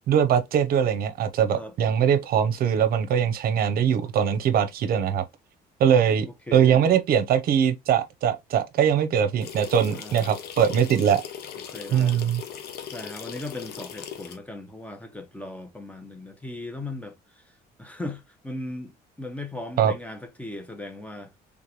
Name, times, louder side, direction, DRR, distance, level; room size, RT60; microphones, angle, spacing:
voice 1, 0.1-5.2 5.8-11.2 11.9-12.4 19.8-19.9, right 8 dB, 60° right, 0.7 m, -22 dB
voice 2, 6.5-6.9 9.9-10.4 11.6-12.3 12.9-21.3, left 2 dB, 10° left, 0.9 m, -38 dB
sound 1, 9.4-14.4, left 8 dB, 70° left, 0.9 m, -39 dB
3.8 x 3.5 x 2.9 m
cardioid pair, 110°, 17 cm